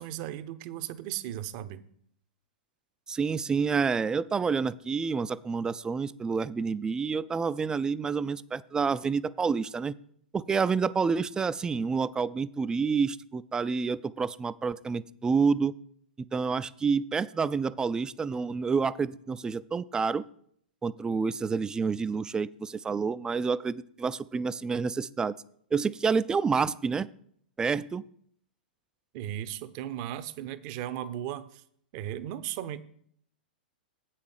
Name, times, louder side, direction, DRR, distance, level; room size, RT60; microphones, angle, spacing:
voice 1, 0.0-1.8 29.1-31.6 31.9-32.8, right 12 dB, 45° right, 14 dB, 0.7 m, -36 dB
voice 2, 3.1-10.0 10.3-15.7 16.3-20.2 20.8-25.3 25.7-27.1 27.6-28.0, right 5 dB, 15° right, 18 dB, 0.3 m, -28 dB
8.3 x 5.7 x 6.4 m, 0.64 s
hypercardioid pair, 105°, 5 cm